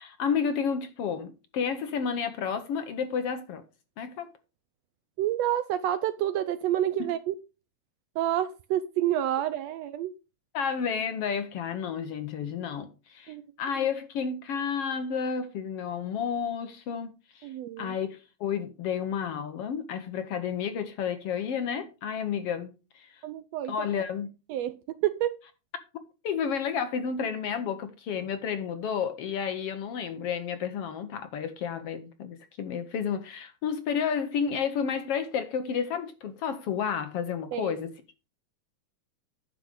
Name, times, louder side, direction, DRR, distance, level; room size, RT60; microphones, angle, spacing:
voice 1, 0.0-3.6 4.0-4.3 7.0-7.1 10.5-17.5 17.8-23.1 23.7-24.3 26.2-37.9, left 7 dB, 65° left, 1.6 m, -31 dB
voice 2, 5.2-7.3 8.2-10.1 13.3-13.4 17.4-18.0 23.2-23.7 24.5-25.4 37.5-37.8, right 12 dB, 75° right, 1.6 m, -29 dB
10.5 x 6.5 x 5.0 m
omnidirectional pair, 3.4 m